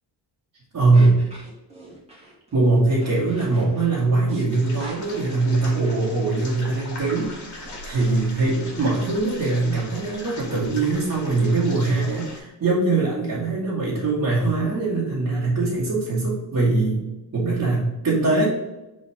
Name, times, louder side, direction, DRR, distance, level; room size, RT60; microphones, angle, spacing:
voice 1, 0.7-1.2 2.5-17.1 17.3-18.5, right 3 dB, 40° right, -8 dB, 2.2 m, -22 dB
sound 1, 0.9-9.2, right 1 dB, 15° right, 2.5 m, -45 dB
sound 2, 4.5-12.4, left 2 dB, 45° left, 2.2 m, -40 dB
5.3 x 4.1 x 5.9 m, 1.0 s
cardioid pair, 135°, 42 cm